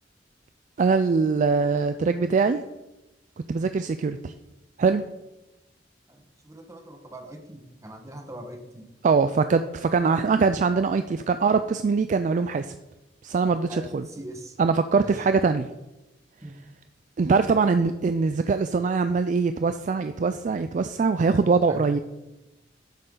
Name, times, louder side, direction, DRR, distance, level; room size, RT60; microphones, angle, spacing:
voice 1, 0.8-2.6 3.5-4.3 4.8-5.1 9.0-12.7 13.2-14.1 14.6-15.7 17.2-22.0, right 4 dB, 45° right, 10 dB, 0.3 m, -22 dB
voice 2, 6.1-8.9 13.7-14.6 15.0-15.2 16.4-16.6 21.7-21.9, right 1 dB, 15° right, 4 dB, 1.2 m, -42 dB
11.0 x 6.6 x 3.8 m, 0.97 s
head